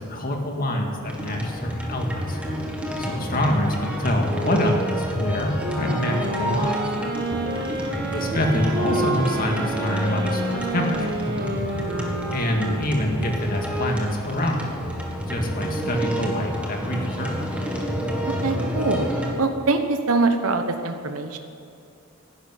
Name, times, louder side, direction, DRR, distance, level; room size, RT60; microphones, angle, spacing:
voice 1, 0.0-2.4 3.0-6.9 8.1-11.5 12.3-14.7 15.3-17.3, left 1 dB, 40° left, 1 dB, 2.1 m, -26 dB
sound 1, 1.1-19.3, equal, 5° right, 1.7 m, -29 dB
sound 2, 5.6-13.3, right 2 dB, 50° right, 1.9 m, -29 dB
voice 2, 7.5-8.0 18.4-19.1 19.4-21.4, right 3 dB, 85° right, 7 dB, 1.1 m, -24 dB
11.5 x 11.0 x 9.4 m, 2.5 s
head